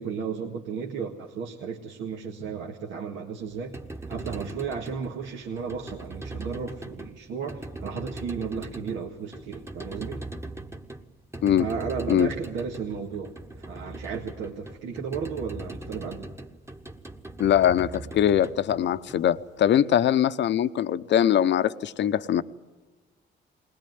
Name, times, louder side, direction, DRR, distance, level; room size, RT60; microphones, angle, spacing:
voice 1, 0.0-3.8 4.1-10.3 11.6-13.4 13.7-16.3, right 6 dB, 80° right, 1 dB, 1.8 m, -34 dB
sound 1, 3.5-19.7, right 2 dB, 15° right, 1.3 m, -40 dB
voice 2, 17.4-22.4, left 10 dB, 65° left, 12 dB, 0.8 m, -22 dB
20.5 x 19.0 x 9.4 m, 1.3 s
cardioid pair, 90°, 20 cm